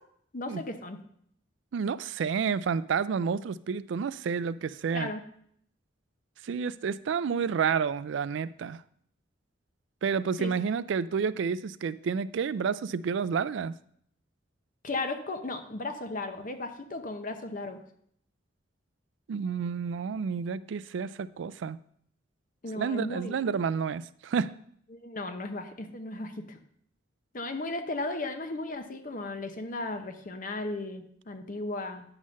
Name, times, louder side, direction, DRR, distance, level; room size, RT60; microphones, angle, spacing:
voice 1, 0.3-1.0 4.9-5.2 10.4-10.5 14.8-17.8 22.6-23.4 24.9-26.6 27.3-32.0, left 2 dB, 45° left, 6 dB, 0.8 m, -35 dB
voice 2, 1.7-5.1 6.4-8.8 10.0-13.7 19.3-21.8 22.7-24.6, right 6 dB, 70° right, 17 dB, 0.3 m, -30 dB
9.8 x 3.7 x 6.3 m, 0.66 s
head